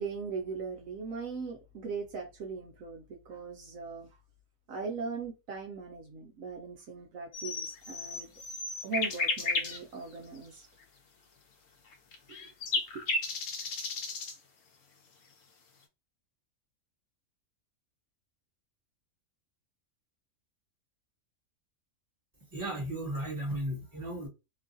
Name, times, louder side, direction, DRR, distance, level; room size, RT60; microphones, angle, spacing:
voice 1, 0.0-4.1 4.7-8.3 8.8-10.7, right 4 dB, 75° right, 1.1 m, -39 dB
sound 1, 7.3-9.8 10.4-10.5 11.9-14.4, left 3 dB, 70° left, 1.0 m, -33 dB
voice 2, 22.5-24.3, right 1 dB, 15° right, 1.2 m, -35 dB
3.0 x 2.3 x 2.5 m
omnidirectional pair, 1.5 m